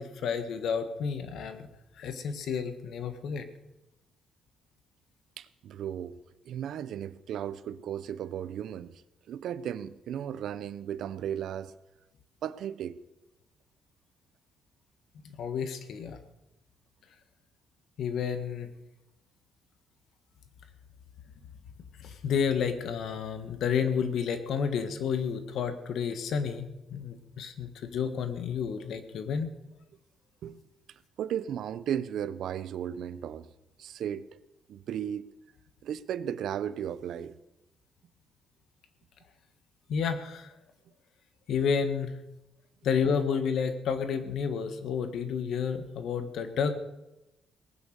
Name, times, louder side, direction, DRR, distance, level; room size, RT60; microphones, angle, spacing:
voice 1, 0.0-1.7 2.0-3.5 15.4-16.2 18.0-18.7 22.0-29.5 39.9-40.5 41.5-42.2 42.8-46.7, left 6 dB, 70° left, 9 dB, 1.7 m, -30 dB
voice 2, 5.4-6.2 6.5-9.0 9.3-11.7 12.4-13.0 30.4-30.6 31.2-33.5 33.8-34.2 34.7-35.2 35.8-37.3, right 9 dB, 75° right, 15 dB, 0.7 m, -35 dB
19.0 x 9.2 x 6.7 m, 0.95 s
cardioid pair, 90°, 0 cm